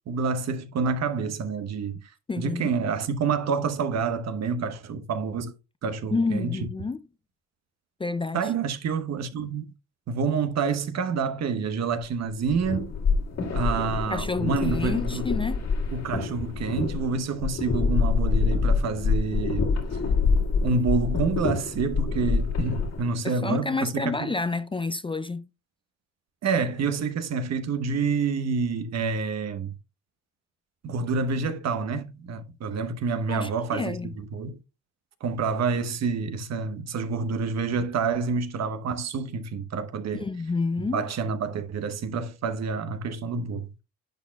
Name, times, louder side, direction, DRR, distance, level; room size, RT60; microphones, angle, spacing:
voice 1, 0.1-2.1 2.4-5.5 5.8-6.6 8.3-9.6 10.1-12.9 13.5-15.2 15.9-19.7 20.6-24.3 26.4-29.7 30.8-34.6 35.2-40.2 40.8-43.7, right 5 dB, 60° right, 1.1 m, -28 dB
voice 2, 2.3-2.7 6.1-7.0 8.0-8.5 14.1-15.6 23.2-25.5 33.3-34.1 40.1-41.1, left 3 dB, 15° left, 0.4 m, -29 dB
sound 1, 12.3-23.1, left 4 dB, 60° left, 2.2 m, -26 dB
10.5 x 6.1 x 2.3 m
cardioid pair, 90°, 30 cm